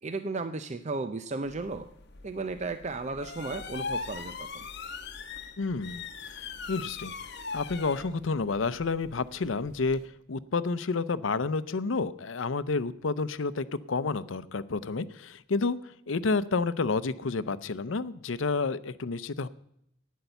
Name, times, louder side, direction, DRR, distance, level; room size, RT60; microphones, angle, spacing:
voice 1, 0.0-1.9 2.2-4.7, right 3 dB, 35° right, 10 dB, 0.6 m, -34 dB
sound 1, 1.5-10.0, left 5 dB, 60° left, 1.1 m, -41 dB
voice 2, 5.6-6.0 6.3-7.1 7.5-10.0 10.3-19.5, left 4 dB, 80° left, 15 dB, 0.6 m, -30 dB
11.5 x 9.3 x 8.0 m, 0.75 s
head